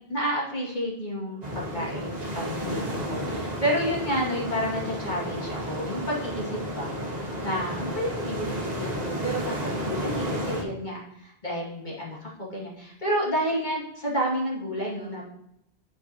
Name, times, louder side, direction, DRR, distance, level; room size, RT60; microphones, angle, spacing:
voice 1, 0.1-15.2, equal, 45° left, -5 dB, 2.3 m, -30 dB
sound 1, 1.4-10.6, equal, 40° right, 1.5 m, -32 dB
11.5 x 4.7 x 2.9 m, 0.80 s
omnidirectional pair, 1.0 m